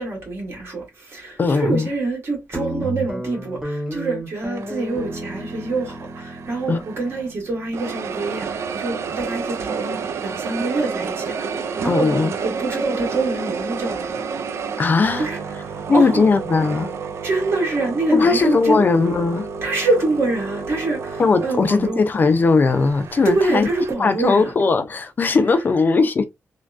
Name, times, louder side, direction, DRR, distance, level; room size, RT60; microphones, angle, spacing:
voice 1, 0.0-12.1 12.4-14.2 15.2-16.3 17.2-18.8 19.6-22.0 23.2-24.5, right 3 dB, 60° right, 1.7 m, -25 dB
voice 2, 1.4-1.9 6.7-6.8 11.9-12.3 14.8-15.3 15.9-16.9 18.1-19.5 21.2-23.7 24.0-26.2, left 4 dB, 40° left, 0.4 m, -18 dB
Guitar, 2.5-9.2, right 2 dB, 10° right, 1.0 m, -33 dB
sound 1, 4.5-7.3 7.7-23.9, right 5 dB, 75° right, 0.3 m, -31 dB
3.3 x 2.2 x 2.4 m
wide cardioid pair, 115°, 5 cm